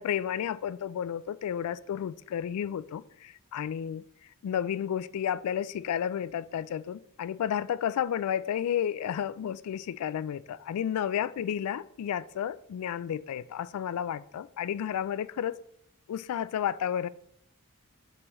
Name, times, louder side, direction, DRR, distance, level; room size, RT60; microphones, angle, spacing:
voice 1, 0.0-4.0 4.4-15.6 16.1-17.1, left 9 dB, 80° left, 0.3 m, -32 dB
6.2 x 6.1 x 3.1 m
head